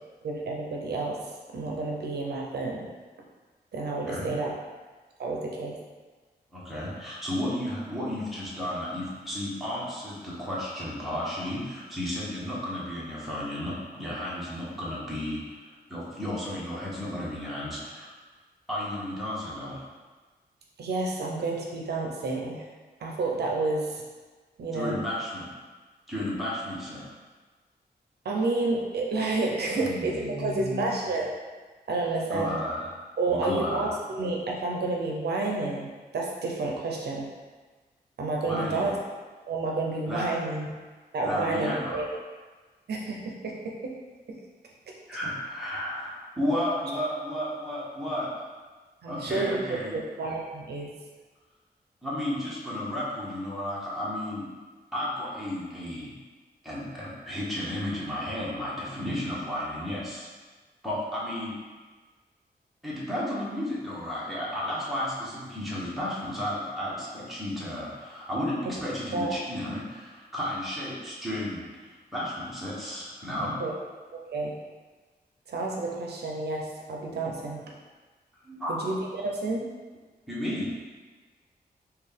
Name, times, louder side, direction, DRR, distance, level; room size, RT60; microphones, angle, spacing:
voice 1, 0.2-1.2 1.5-2.9 3.7-4.5 5.2-5.8 20.8-22.7 23.0-24.0 24.6-25.0 28.2-31.3 31.9-32.6 33.2-37.3 38.2-39.0 39.5-40.7 41.1-42.1 42.9-43.9 44.3-44.4 49.0-49.6 49.9-50.9 68.6-68.7 69.1-69.4 73.4-73.7 74.1-74.6 75.5-77.6 78.7-79.6, right 3 dB, 75° right, -1 dB, 0.5 m, -30 dB
voice 2, 6.5-18.1 18.7-19.8 24.7-25.5 26.1-27.1 29.7-30.9 32.3-32.9 33.3-34.0 38.4-38.9 40.1-40.3 41.2-42.0 45.1-48.3 49.1-50.0 52.0-54.5 54.9-56.1 56.6-60.3 60.8-61.5 62.8-73.6 78.4-78.8 80.3-80.7, left 1 dB, ahead, -8 dB, 0.9 m, -33 dB
4.0 x 2.2 x 3.4 m, 1.4 s
wide cardioid pair, 140°, 17 cm